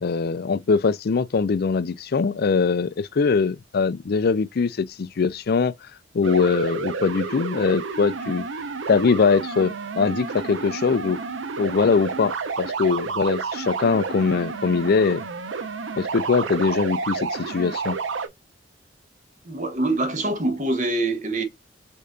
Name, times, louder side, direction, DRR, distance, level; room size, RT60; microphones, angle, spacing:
voice 1, 0.0-5.7 6.1-8.4 8.9-11.2 11.6-15.2 16.0-18.0, left 5 dB, 55° left, 0.4 m, -22 dB
sound 1, 6.2-18.3, right 4 dB, 85° right, 0.7 m, -30 dB
voice 2, 19.4-21.4, right 2 dB, 40° right, 1.2 m, -24 dB
6.5 x 2.6 x 2.3 m
head